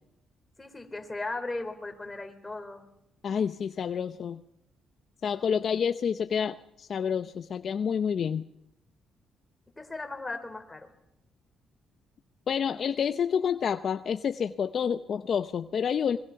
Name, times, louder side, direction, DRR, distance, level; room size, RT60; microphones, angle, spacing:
voice 1, 0.6-2.8 9.8-10.9, left 2 dB, 15° left, 4 dB, 4.2 m, -37 dB
voice 2, 3.2-4.4 5.2-8.4 12.5-16.2, left 7 dB, 55° left, 9 dB, 0.8 m, -28 dB
26.0 x 22.0 x 5.9 m, 0.85 s
cardioid pair, 90°, 0 cm